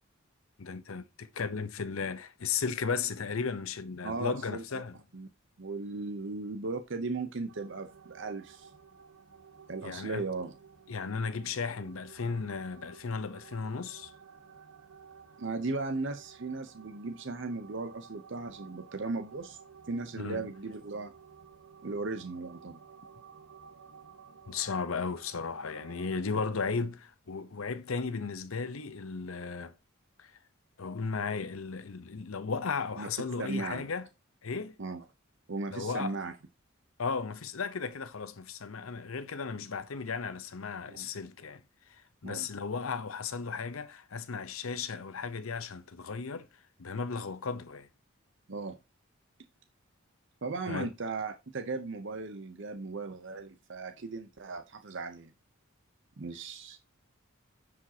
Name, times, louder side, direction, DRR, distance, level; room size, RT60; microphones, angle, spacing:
voice 1, 0.6-5.0 9.8-10.2 10.9-14.1 20.2-20.5 24.5-29.7 30.2-30.3 30.8-34.1 34.4-34.8 35.7-36.1 37.0-41.6 42.2-46.5 46.8-47.9 50.7-50.9, left 5 dB, 75° left, 0.8 m, -35 dB
voice 2, 4.0-4.6 5.1-5.3 5.6-8.7 9.7-10.5 15.4-19.6 19.9-21.1 21.8-22.8 33.0-33.1 33.4-33.9 34.8-35.0 35.5-36.3 40.9-41.1 42.2-42.5 48.5-48.8 50.4-55.3 56.2-56.8, right 3 dB, 60° right, 0.7 m, -37 dB
sound 1, 7.5-26.1, right 6 dB, 85° right, 0.9 m, -54 dB
9.8 x 5.1 x 2.8 m
head